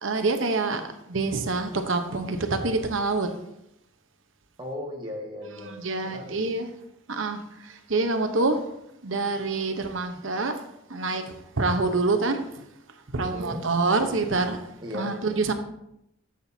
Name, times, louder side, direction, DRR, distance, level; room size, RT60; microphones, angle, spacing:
voice 1, 0.0-3.3 5.6-6.7 7.1-8.6 9.0-10.6 10.9-12.6 13.1-14.6 14.9-15.5, right 3 dB, 65° right, 7 dB, 1.0 m, -26 dB
voice 2, 4.6-5.7 6.0-6.4 13.2-13.6 14.8-15.1, left 1 dB, 20° right, -2 dB, 1.3 m, -36 dB
13.0 x 7.8 x 2.8 m, 0.80 s
head